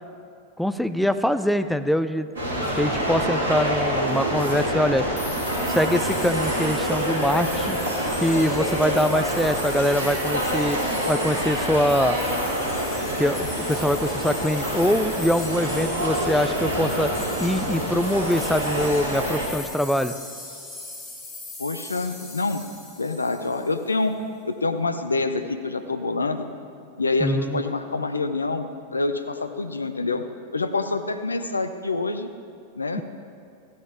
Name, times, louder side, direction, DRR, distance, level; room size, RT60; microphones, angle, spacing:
voice 1, 0.6-2.3 2.7-5.0 5.7-7.8 8.2-10.8 11.1-12.2 13.2-17.1 17.4-20.1 27.2-27.6 33.0-33.1, equal, ahead, 10 dB, 0.4 m, -23 dB
sound 1, 2.3-19.5, equal, 65° right, 2.9 m, -26 dB
sound 2, 5.2-23.8, left 2 dB, 15° left, 2.2 m, -39 dB
voice 2, 21.6-22.6 23.0-24.2 24.5-26.5 27.0-30.2 30.5-32.3 32.8-33.0, left 3 dB, 80° left, 9 dB, 0.6 m, -26 dB
15.0 x 9.3 x 3.5 m, 2.5 s
figure-of-eight pair, 90°, 0 cm